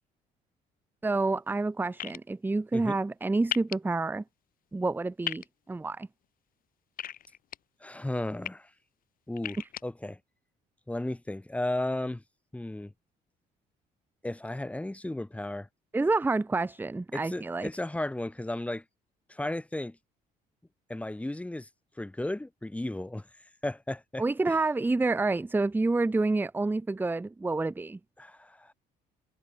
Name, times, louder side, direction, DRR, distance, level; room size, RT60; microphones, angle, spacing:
voice 1, 1.0-4.2 4.7-6.1 15.9-17.7 24.2-28.0, right 3 dB, 10° right, 0.8 m, -28 dB
sound 1, 2.0-2.2 3.5-3.8 5.2-5.5 7.0-7.6 8.2-8.5 9.4-9.8, left 10 dB, 55° left, 3.3 m, -34 dB
voice 2, 7.8-8.7 9.3-10.2 10.9-12.2 12.5-12.9 14.2-15.7 17.1-18.8 19.3-20.0 20.9-21.7 22.0-23.3 23.6-24.6 28.2-28.7, left 1 dB, 10° left, 3.4 m, -34 dB
cardioid pair, 110°, 17 cm